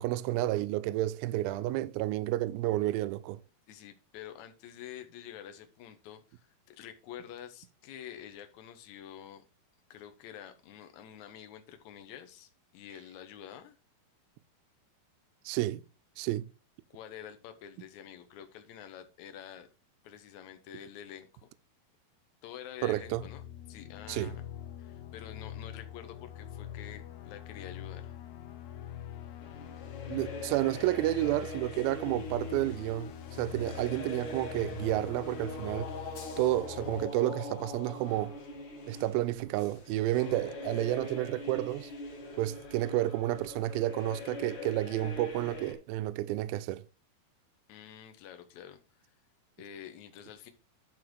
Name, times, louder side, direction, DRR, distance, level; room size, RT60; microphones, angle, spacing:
voice 1, 0.0-3.4 15.5-15.8 16.2-16.5 22.8-23.2 24.1-24.3 30.1-33.1 33.4-35.9 36.4-38.4 38.9-41.9 42.4-46.8, right 16 dB, 80° right, 2.3 m, -31 dB
voice 2, 3.7-9.4 9.9-13.8 16.9-19.7 20.0-21.5 22.4-24.4 24.8-28.1 47.7-48.8 49.6-50.5, left 10 dB, 65° left, 1.9 m, -48 dB
sound 1, 22.9-37.1, left 11 dB, 90° left, 1.6 m, -44 dB
sound 2, 29.4-45.7, left 2 dB, 50° left, 3.5 m, -43 dB
11.0 x 4.2 x 4.7 m
omnidirectional pair, 4.5 m